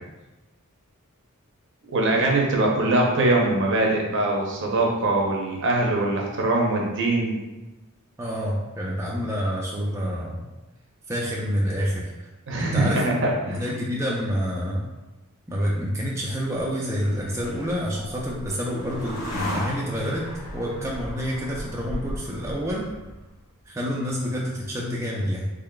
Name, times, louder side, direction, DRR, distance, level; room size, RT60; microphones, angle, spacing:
voice 1, 1.9-7.4 12.5-13.1 13.5-13.6, right 2 dB, 60° right, -1 dB, 0.7 m, -22 dB
voice 2, 8.2-10.4 11.1-12.3 12.5-14.9 15.5-20.3 20.5-22.9 23.7-25.5, equal, 15° right, -4 dB, 0.4 m, -28 dB
sound 1, 16.0-23.4, equal, 80° left, 1.1 m, -36 dB
3.8 x 3.3 x 2.2 m, 1.0 s
head